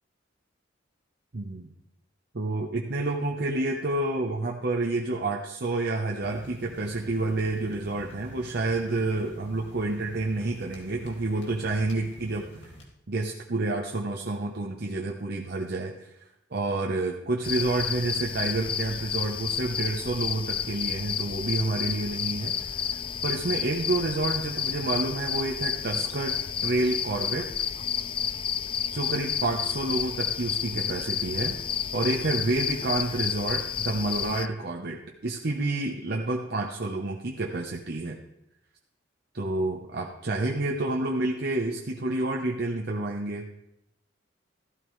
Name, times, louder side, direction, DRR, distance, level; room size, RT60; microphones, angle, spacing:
voice 1, 1.3-1.7 2.3-12.7 13.1-16.2 16.5-22.6 23.2-27.5 28.9-31.6 31.9-38.2 39.3-43.5, right 2 dB, 55° right, 1 dB, 0.9 m, -29 dB
sound 1, 6.2-12.9, left 1 dB, 75° left, 2.2 m, -48 dB
sound 2, 17.4-34.5, left 8 dB, 30° left, 0.3 m, -31 dB
14.5 x 12.5 x 3.2 m, 0.85 s
head